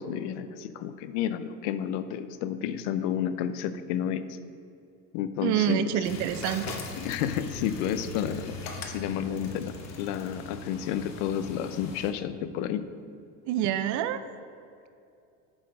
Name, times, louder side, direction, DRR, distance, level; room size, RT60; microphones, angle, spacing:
voice 1, 0.0-4.2 5.1-6.0 7.0-8.5 8.9-12.8, left 9 dB, 75° left, 11 dB, 0.6 m, -31 dB
voice 2, 5.4-6.8 13.5-14.2, right 11 dB, 60° right, 12 dB, 0.5 m, -27 dB
sound 1, 6.0-12.1, left 3 dB, 50° left, 1.0 m, -40 dB
7.8 x 4.4 x 5.3 m, 2.5 s
supercardioid pair, 115°, 35 cm